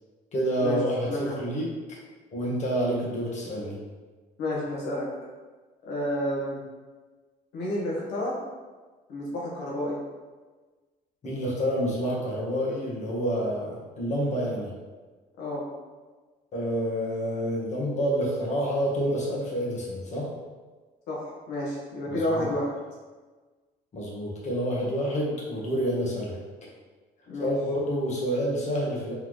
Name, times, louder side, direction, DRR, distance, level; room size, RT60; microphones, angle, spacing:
voice 1, 0.3-2.0 2.3-3.8 11.2-14.7 16.5-20.3 22.1-22.5 23.9-26.3 27.4-29.1, equal, 45° left, -4 dB, 1.4 m, -28 dB
voice 2, 1.0-1.4 4.4-5.1 5.8-6.6 7.5-8.4 9.1-10.0 15.4-15.6 21.1-22.7 27.3-27.5, left 1 dB, 85° left, -5 dB, 1.4 m, -30 dB
3.9 x 3.6 x 3.1 m, 1.3 s
cardioid pair, 110°, 17 cm